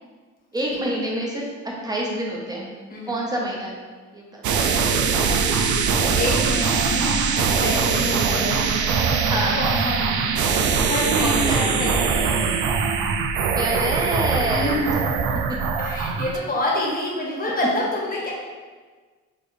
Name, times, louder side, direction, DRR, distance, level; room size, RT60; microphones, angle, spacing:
voice 1, 0.5-2.7 3.1-3.8 4.1-4.4 9.3-9.6 11.2-11.7 13.5-14.7, right 1 dB, 15° right, -3 dB, 1.0 m, -27 dB
sound 1, 4.4-16.4, right 5 dB, 75° right, 0.5 m, -22 dB
voice 2, 6.1-8.6 9.5-10.4 10.8-12.6 14.5-15.3 15.8-18.3, left 1 dB, 30° left, -4 dB, 1.3 m, -27 dB
4.3 x 3.3 x 3.2 m, 1.4 s
cardioid pair, 90°, 30 cm